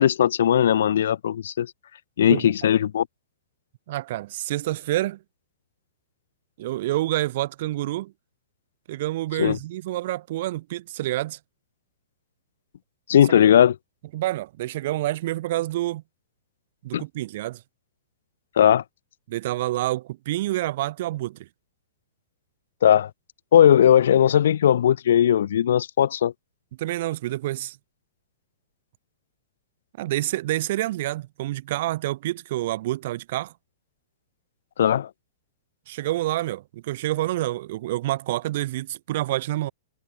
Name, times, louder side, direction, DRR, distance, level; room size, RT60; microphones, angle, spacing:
voice 1, 0.0-1.7 2.2-3.1 9.4-9.6 13.1-13.8 16.9-17.0 18.6-18.8 22.8-23.1 23.5-26.3 34.8-35.1, left 10 dB, 65° left, 0.6 m, -18 dB
voice 2, 3.9-5.2 6.6-8.1 8.9-11.4 14.1-16.0 16.8-17.6 19.3-21.5 26.8-27.8 30.0-33.5 35.9-39.7, right 16 dB, 40° right, 2.6 m, -28 dB
hypercardioid pair, 175°, 0 cm